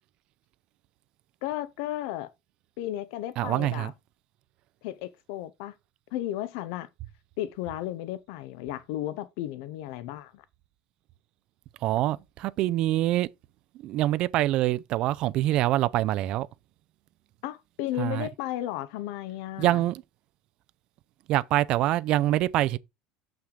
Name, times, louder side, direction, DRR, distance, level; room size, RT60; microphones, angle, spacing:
voice 1, 1.4-2.3 2.8-3.9 4.8-5.7 6.1-6.9 7.4-10.4 17.4-19.8, left 14 dB, 65° left, 0.5 m, -34 dB
voice 2, 3.4-3.9 11.8-13.3 13.8-16.5 18.0-18.3 19.6-20.0 21.3-22.8, right 15 dB, 40° right, 0.4 m, -25 dB
6.5 x 5.8 x 3.7 m
cardioid pair, 170°, 2 cm